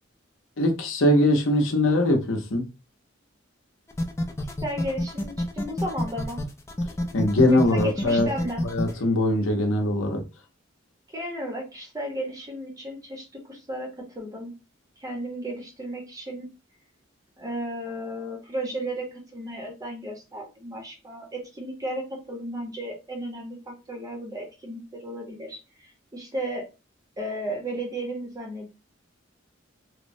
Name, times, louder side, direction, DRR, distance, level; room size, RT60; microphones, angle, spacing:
voice 1, 0.6-2.6 7.1-8.3 8.6-10.2, left 1 dB, 80° left, 0.7 m, -21 dB
sound 1, 3.9-8.9, left 1 dB, 15° left, 0.3 m, -28 dB
voice 2, 4.6-6.4 7.5-8.6 11.1-14.5 15.0-16.5 17.4-26.7 27.2-28.7, right 1 dB, 20° right, 0.7 m, -34 dB
3.1 x 2.0 x 2.6 m
head